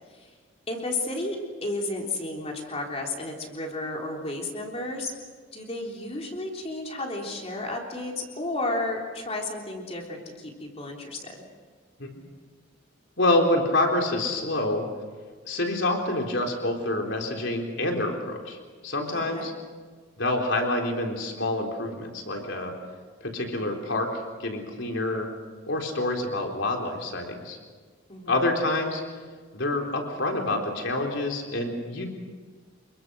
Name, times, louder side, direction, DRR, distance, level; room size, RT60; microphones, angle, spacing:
voice 1, 0.7-5.1 5.5-11.4 19.1-19.5 28.1-28.4, left 2 dB, 30° left, 0 dB, 3.5 m, -32 dB
voice 2, 13.2-14.9 15.4-18.6 18.8-19.5 20.2-22.8 23.2-25.3 25.6-27.6 28.3-29.0 29.5-32.1, left 2 dB, 65° left, 2 dB, 3.9 m, -27 dB
28.0 x 22.5 x 6.4 m, 1.5 s
head